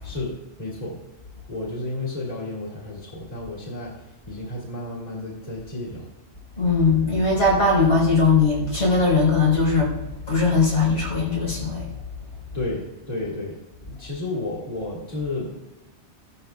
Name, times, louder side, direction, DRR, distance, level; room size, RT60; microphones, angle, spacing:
voice 1, 0.0-1.0 1.5-6.1 12.5-15.6, left 2 dB, 35° left, -4 dB, 2.1 m, -32 dB
voice 2, 6.6-9.9 10.3-11.9, left 3 dB, 85° left, -6 dB, 4.1 m, -19 dB
14.5 x 12.0 x 2.3 m, 1.1 s
omnidirectional pair, 1.2 m